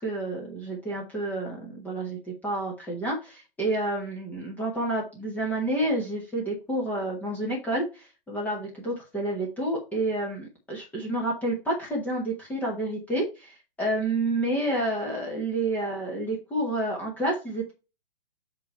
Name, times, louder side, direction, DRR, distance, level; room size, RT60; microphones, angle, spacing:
voice 1, 0.0-17.7, right 1 dB, 5° left, -3 dB, 1.2 m, -29 dB
7.8 x 3.1 x 5.3 m, 0.29 s
figure-of-eight pair, 130°, 29 cm